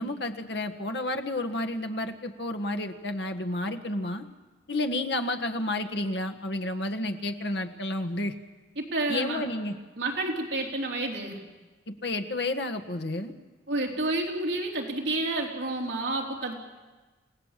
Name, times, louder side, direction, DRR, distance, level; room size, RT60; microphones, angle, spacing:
voice 1, 0.0-4.2 4.7-8.3 9.1-9.7 11.9-13.3, left 1 dB, 60° left, 7 dB, 1.6 m, -31 dB
voice 2, 8.8-9.4 10.0-11.4 13.7-16.6, right 2 dB, 65° right, 0 dB, 3.6 m, -30 dB
28.5 x 17.5 x 7.6 m, 1.2 s
head